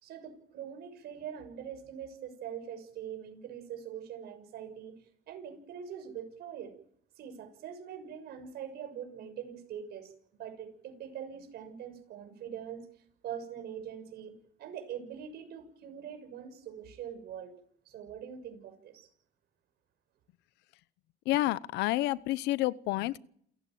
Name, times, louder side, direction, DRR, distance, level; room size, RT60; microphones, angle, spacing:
voice 1, 0.0-5.0 5.3-6.7 7.2-10.1 10.4-12.9 13.2-17.5 17.8-19.1, right 8 dB, 70° right, 6.6 m, -43 dB
voice 2, 21.2-23.2, left 17 dB, 90° left, 0.9 m, -29 dB
28.5 x 15.5 x 9.3 m
cardioid pair, 110°, 17 cm